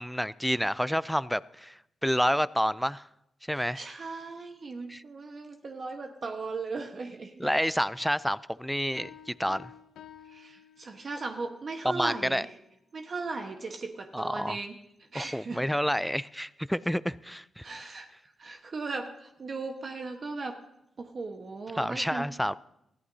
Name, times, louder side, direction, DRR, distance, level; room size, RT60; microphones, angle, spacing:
voice 1, 0.0-3.1 3.5-3.9 4.9-5.0 7.4-9.7 11.8-12.5 14.1-14.6 15.1-17.6 21.8-22.6, equal, ahead, 0.4 m, -29 dB
voice 2, 3.5-7.5 10.3-12.5 12.9-14.7 15.1-15.6 17.6-18.1 18.4-20.5 21.0-22.3, right 3 dB, 50° right, 1.3 m, -37 dB
sound 1, 9.0-11.3, left 10 dB, 90° left, 0.8 m, -51 dB
21.0 x 14.5 x 2.8 m
cardioid pair, 60°, 0 cm